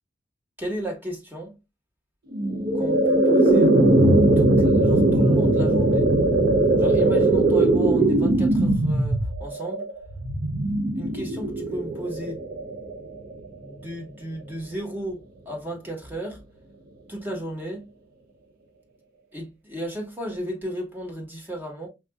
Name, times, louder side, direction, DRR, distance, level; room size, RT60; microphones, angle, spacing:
voice 1, 0.6-1.6 2.7-3.7 4.4-6.1 6.8-9.9 10.9-12.4 13.5-15.2 15.4-16.4 17.1-17.9 19.3-21.9, right 1 dB, 10° right, 1.3 m, -34 dB
sound 1, 2.3-13.5, right 2 dB, 55° right, 0.6 m, -20 dB
5.7 x 2.6 x 2.2 m
head